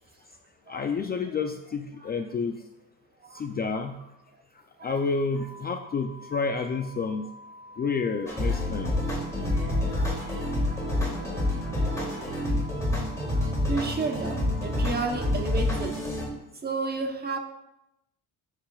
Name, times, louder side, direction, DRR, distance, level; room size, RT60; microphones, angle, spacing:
voice 1, 0.7-2.6 3.3-4.0 4.8-7.3 7.8-9.0, left 4 dB, 25° left, 5 dB, 0.4 m, -29 dB
sound 1, 5.4-15.4, left 1 dB, 50° left, 1.9 m, -48 dB
sound 2, 8.3-16.3, left 1 dB, 10° left, 2.7 m, -28 dB
voice 2, 9.5-10.1 10.7-10.8 13.3-15.9 16.6-17.4, right 4 dB, 25° right, 4 dB, 1.0 m, -32 dB
10.0 x 7.8 x 2.4 m, 0.86 s
cardioid pair, 135°, 36 cm